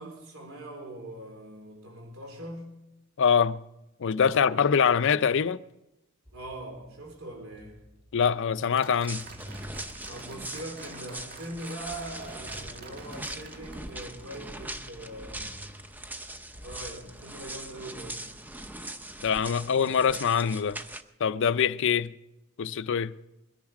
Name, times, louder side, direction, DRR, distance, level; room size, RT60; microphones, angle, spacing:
voice 1, 0.0-2.8 6.3-7.8 10.1-15.6 16.5-18.4, right 1 dB, 70° right, 3.7 m, -42 dB
voice 2, 3.2-3.6 4.0-5.6 8.1-9.2 19.2-20.8 21.2-22.1 22.6-23.1, left 7 dB, 60° left, 0.5 m, -24 dB
sound 1, 6.2-17.6, equal, 30° right, 2.2 m, -51 dB
Applause, 8.8-14.7, right 4 dB, 45° right, 1.7 m, -49 dB
sound 2, 9.1-21.0, right 1 dB, 10° right, 0.7 m, -41 dB
22.0 x 10.5 x 4.9 m
head